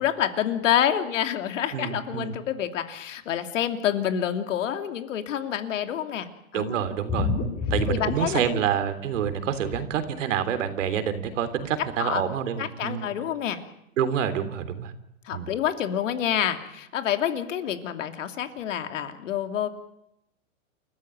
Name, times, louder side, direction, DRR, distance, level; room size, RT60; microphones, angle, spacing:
voice 1, 0.0-6.8 7.9-8.6 12.0-12.3 12.6-13.6 15.2-19.7, left 10 dB, 65° left, 7 dB, 2.8 m, -28 dB
voice 2, 1.7-2.3 6.5-7.3 7.7-13.1 14.0-14.9 15.3-15.5, right 8 dB, 65° right, 10 dB, 3.4 m, -27 dB
sound 1, 7.1-8.8 9.1-9.8 10.8-10.9 11.3-11.4 11.6-11.7, left 4 dB, 25° left, 6.6 m, -29 dB
29.5 x 14.5 x 9.0 m, 0.83 s
hypercardioid pair, 135°, 41 cm